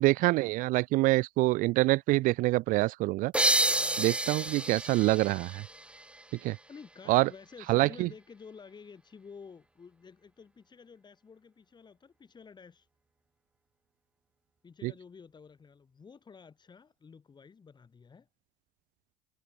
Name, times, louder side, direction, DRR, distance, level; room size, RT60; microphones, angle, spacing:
voice 1, 0.0-3.3 4.0-5.6 6.4-6.6 7.1-7.3 7.7-8.1 14.8-14.9, right 20 dB, 55° right, 1.2 m, -26 dB
sound 1, 3.3-6.8, right 1 dB, 5° right, 2.0 m, -30 dB
voice 2, 6.7-12.9 14.6-18.3, left 5 dB, 25° left, 6.8 m, -51 dB
hypercardioid pair, 70°, 16 cm